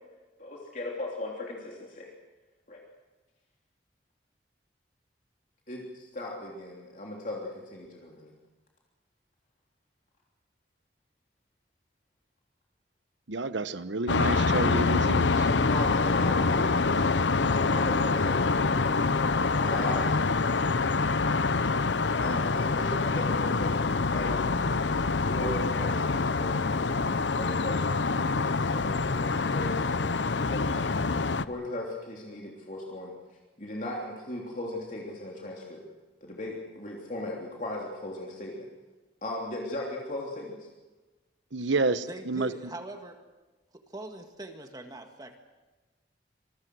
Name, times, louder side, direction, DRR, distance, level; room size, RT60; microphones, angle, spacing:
voice 1, 0.4-2.1 2.7-2.8 5.7-8.3 15.7-20.2 22.2-24.6 25.0-27.0 27.3-30.8 31.4-33.1 33.6-35.8 36.2-38.7 39.2-40.7, left 1 dB, 45° left, -2 dB, 3.3 m, -37 dB
voice 2, 13.3-15.5 41.5-42.5, right 3 dB, 90° right, 13 dB, 1.1 m, -29 dB
sound 1, 14.1-31.4, left 4 dB, 80° left, 0.8 m, -26 dB
voice 3, 42.1-43.2 43.7-45.4, right 2 dB, 20° right, 5 dB, 1.8 m, -42 dB
26.5 x 22.0 x 6.4 m, 1.2 s
head